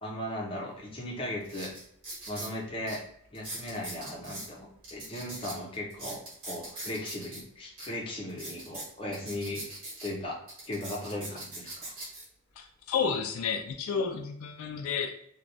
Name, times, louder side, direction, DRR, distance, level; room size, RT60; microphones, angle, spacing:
voice 1, 0.0-1.7 2.3-3.0 3.3-9.6 10.0-10.4 10.7-11.9, left 1 dB, 25° left, -1 dB, 0.6 m, -37 dB
sound 1, 0.8-0.9 1.4-2.5 2.9-3.0 3.3-4.5 4.8-7.4 7.8-7.9 8.3-10.1 10.5-12.2 12.9-13.1, right 1 dB, 65° right, 1.5 m, -41 dB
voice 2, 12.6-15.3, left 6 dB, 70° left, 4 dB, 0.3 m, -31 dB
3.2 x 2.3 x 2.6 m, 0.68 s
head